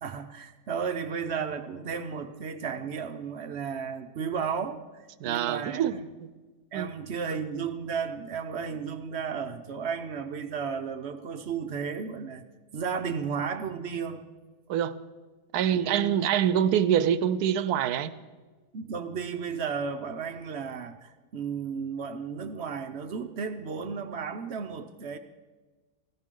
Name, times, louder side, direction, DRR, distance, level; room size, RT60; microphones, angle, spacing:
voice 1, 0.0-4.8 5.2-6.1 6.7-12.4 12.7-14.3 15.7-16.1 18.7-25.2, right 6 dB, 55° right, 9 dB, 0.8 m, -34 dB
voice 2, 5.2-6.0 6.7-6.9 14.7-15.0 15.5-18.1, right 9 dB, 75° right, 15 dB, 1.1 m, -25 dB
18.0 x 15.0 x 3.8 m, 1.3 s
omnidirectional pair, 1.8 m